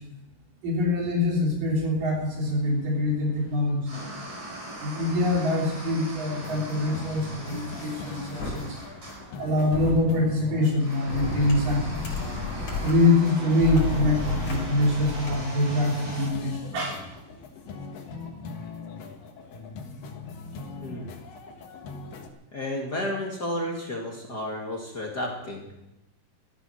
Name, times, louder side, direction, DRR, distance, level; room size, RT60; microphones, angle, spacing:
voice 1, 0.6-3.8 4.8-8.8 9.4-11.9 12.8-17.0, left 2 dB, 75° right, -2 dB, 5.3 m, -24 dB
sound 1, 2.2-16.3, right 1 dB, 45° right, 6.9 m, -41 dB
sound 2, 6.4-22.3, left 4 dB, 75° left, 3.2 m, -40 dB
sound 3, 8.4-8.5 9.7-9.9 11.1-12.9 13.6-15.4, left 3 dB, 60° left, 5.5 m, -32 dB
voice 2, 22.5-25.7, left 1 dB, 35° left, -1 dB, 2.3 m, -32 dB
15.0 x 14.0 x 6.4 m, 0.91 s
omnidirectional pair, 3.9 m